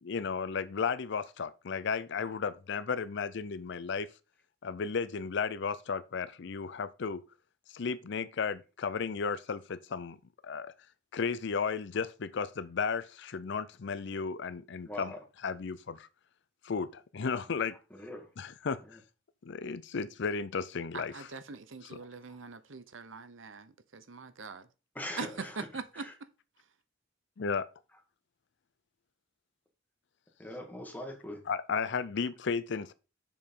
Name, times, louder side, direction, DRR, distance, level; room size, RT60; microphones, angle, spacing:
voice 1, 0.0-4.1 4.6-7.2 7.7-10.2 10.4-10.7 11.1-15.1 15.4-16.1 16.6-17.8 18.4-18.8 19.4-21.3 21.8-22.0 27.4-27.7 31.5-32.9, left 5 dB, 65° left, 0.5 m, -34 dB
voice 2, 14.9-15.2 17.9-18.3 18.8-19.0 24.9-25.7 25.9-26.1 30.4-31.4, left 1 dB, 10° left, 2.0 m, -42 dB
voice 3, 20.9-24.7 25.2-25.3 25.6-26.0, right 4 dB, 85° right, 0.9 m, -42 dB
7.0 x 5.0 x 5.4 m
head